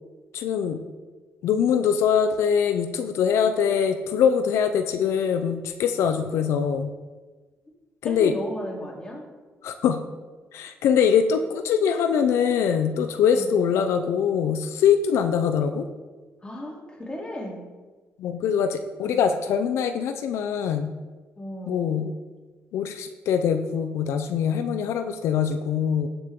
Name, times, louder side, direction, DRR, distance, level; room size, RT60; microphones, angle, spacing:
voice 1, 0.3-0.8 1.4-6.9 8.0-8.3 9.6-10.0 10.5-15.8 18.2-20.9 21.7-22.1 22.7-26.1, left 7 dB, 85° left, 8 dB, 0.6 m, -23 dB
voice 2, 8.0-9.2 13.3-13.6 16.4-17.6 19.0-19.2 21.4-21.9, left 1 dB, 20° left, -2 dB, 3.3 m, -35 dB
15.5 x 7.1 x 3.7 m, 1.3 s
cardioid pair, 95°, 5 cm